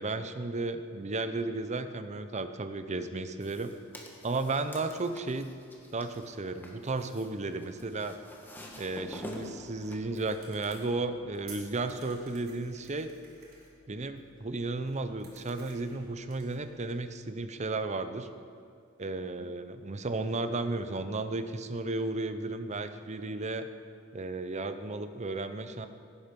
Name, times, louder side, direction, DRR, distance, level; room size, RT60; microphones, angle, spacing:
voice 1, 0.0-3.7 4.2-5.5 5.9-8.1 8.8-13.1 13.9-18.3 19.0-23.7 24.1-25.9, right 3 dB, 35° right, 10 dB, 0.7 m, -34 dB
sound 1, 3.4-10.0, left 1 dB, 10° left, 1.7 m, -47 dB
sound 2, 8.6-17.0, right 3 dB, 50° right, 4.2 m, -56 dB
17.5 x 10.0 x 5.3 m, 2.3 s
head